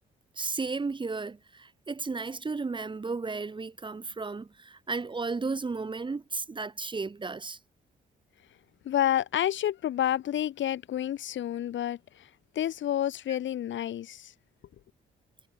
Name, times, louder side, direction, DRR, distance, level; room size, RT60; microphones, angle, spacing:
voice 1, 0.4-7.6 13.3-13.4, right 4 dB, 25° right, 1.2 m, -34 dB
voice 2, 8.8-12.3 12.6-14.3, left 11 dB, 70° left, 3.5 m, -29 dB
cardioid pair, 90°, 20 cm